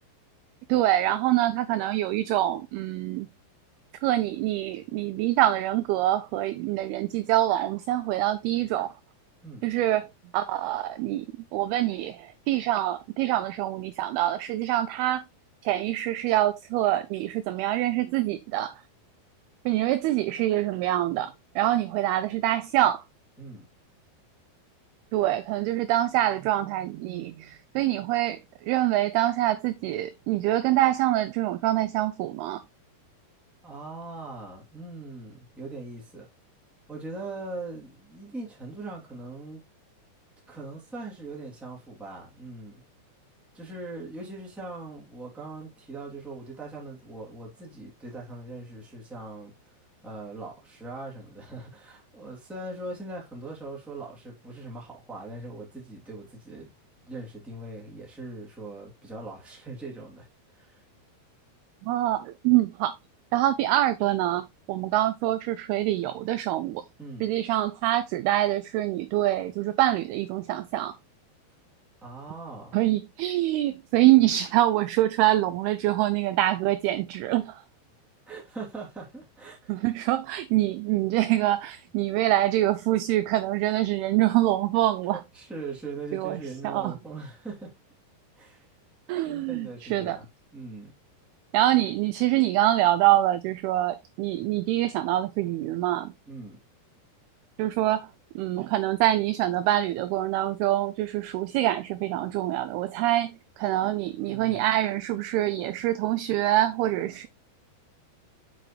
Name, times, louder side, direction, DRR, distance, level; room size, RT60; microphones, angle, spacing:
voice 1, 0.7-3.3 4.0-8.9 9.6-10.1 10.3-11.3 11.5-15.2 15.6-18.8 19.7-23.0 25.1-32.6 61.8-63.0 63.3-66.8 67.2-71.0 72.7-77.6 79.7-85.2 86.1-86.9 89.1-90.2 91.5-96.1 97.6-98.1 98.4-107.3, right 14 dB, 85° right, 2.2 m, -25 dB
voice 2, 33.6-36.3 36.9-39.6 40.5-42.8 43.5-49.5 50.0-56.7 57.0-60.3 60.5-60.8 67.0-67.3 72.0-72.8 78.3-79.7 85.0-87.7 88.4-88.7 89.2-90.2 90.5-90.9 96.3-96.6 104.2-104.7, right 3 dB, ahead, 1.9 m, -40 dB
8.0 x 5.9 x 3.2 m
omnidirectional pair, 4.9 m